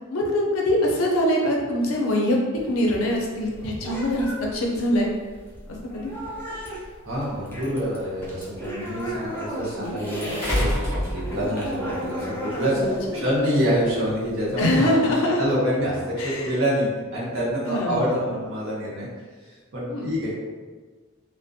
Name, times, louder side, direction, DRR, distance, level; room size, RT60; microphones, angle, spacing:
voice 1, 0.1-2.4 2.6-5.1 5.9-6.1 9.7-10.0 13.1-13.3 14.6-15.4 16.2-16.5 17.6-18.2 19.9-20.1, left 1 dB, 75° left, -1 dB, 0.5 m, -23 dB
sound 1, 2.5-10.6 11.0-14.7, equal, 10° left, 0.4 m, -34 dB
voice 2, 7.0-19.1 19.4-20.3, equal, 70° right, -6 dB, 0.8 m, -26 dB
sound 2, 10.4-11.7 13.1-13.2, equal, 15° right, 0.9 m, -26 dB
2.4 x 2.0 x 2.5 m, 1.4 s
head